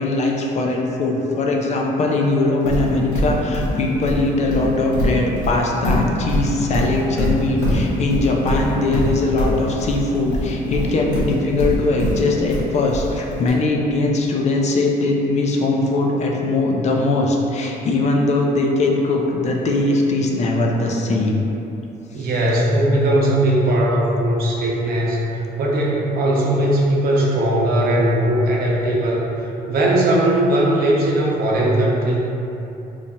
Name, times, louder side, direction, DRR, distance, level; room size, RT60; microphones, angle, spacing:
voice 1, 0.0-21.4 22.1-22.3, left 2 dB, 40° left, 0 dB, 0.5 m, -20 dB
Livestock farm animals working animals, 2.7-13.5, left 1 dB, 75° left, 1.3 m, -23 dB
voice 2, 22.1-32.2, right 1 dB, 60° right, -4 dB, 0.7 m, -19 dB
3.1 x 2.3 x 4.2 m, 2.9 s
cardioid pair, 110°, 17 cm